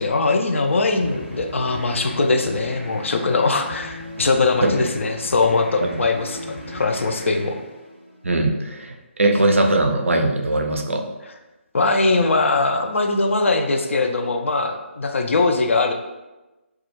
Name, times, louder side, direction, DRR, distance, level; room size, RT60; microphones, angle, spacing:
voice 1, 0.0-7.6 11.7-15.9, left 3 dB, 75° left, 5 dB, 0.4 m, -21 dB
sound 1, 0.7-8.4, left 1 dB, ahead, 0.4 m, -37 dB
voice 2, 8.2-8.9 9.2-11.1, right 2 dB, 90° right, 4 dB, 0.4 m, -20 dB
2.3 x 2.1 x 2.9 m, 1.1 s
figure-of-eight pair, 150°, 7 cm